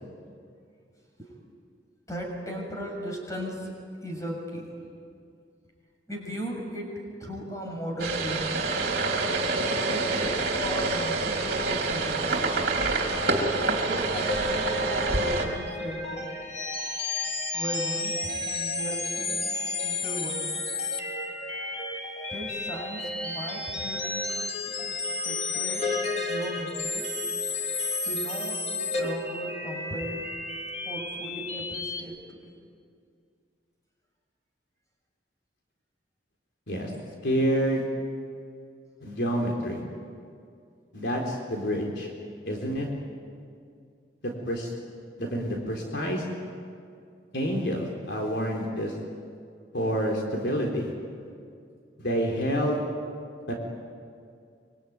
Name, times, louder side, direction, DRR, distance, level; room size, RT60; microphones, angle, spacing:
voice 1, 2.1-3.7 4.0-4.8 6.1-8.8 9.9-10.1 10.6-12.8 13.6-16.3 17.5-19.4 19.8-20.6 22.3-24.4 24.8-27.1 28.0-30.2 30.8-32.5, equal, 20° left, 0 dB, 6.7 m, -37 dB
sound 1, 8.0-15.4, right 3 dB, 55° right, 3.5 m, -27 dB
sound 2, 14.1-32.0, left 3 dB, 35° left, 2.9 m, -32 dB
voice 2, 37.2-37.9 39.0-39.8 40.9-42.1 42.4-42.9 44.2-44.7 45.2-46.2 47.3-48.9 49.7-50.9 52.0-52.8 53.5-53.6, equal, 65° left, 0 dB, 4.0 m, -28 dB
25.0 x 24.5 x 9.5 m, 2.3 s
head